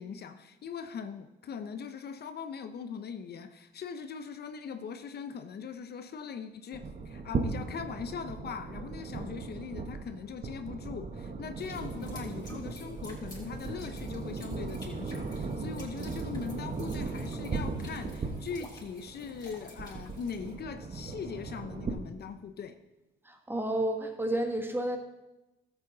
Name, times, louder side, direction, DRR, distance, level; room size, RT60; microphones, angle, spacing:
voice 1, 0.0-22.8, left 6 dB, 55° left, 9 dB, 0.7 m, -40 dB
sound 1, 6.7-21.9, right 4 dB, 40° right, 1.2 m, -38 dB
sound 2, 11.6-20.5, left 2 dB, 20° left, 3.7 m, -53 dB
voice 2, 23.2-25.0, right 1 dB, 10° right, 4 dB, 1.3 m, -31 dB
13.5 x 8.1 x 3.9 m, 1.0 s
cardioid pair, 90°, 20 cm